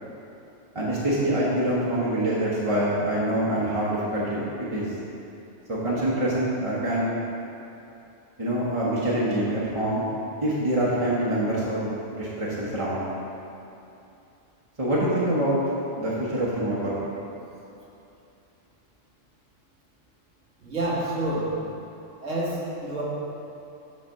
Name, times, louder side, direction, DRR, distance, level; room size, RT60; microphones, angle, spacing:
voice 1, 0.7-4.4 4.7-4.9 5.7-7.1 8.4-10.1 10.4-13.0 14.8-15.6 16.0-16.9, right 1 dB, 30° right, -8 dB, 0.9 m, -25 dB
voice 2, 20.6-21.5 22.2-23.0, right 1 dB, 85° right, -5 dB, 1.7 m, -28 dB
8.3 x 3.3 x 6.4 m, 2.8 s
omnidirectional pair, 1.3 m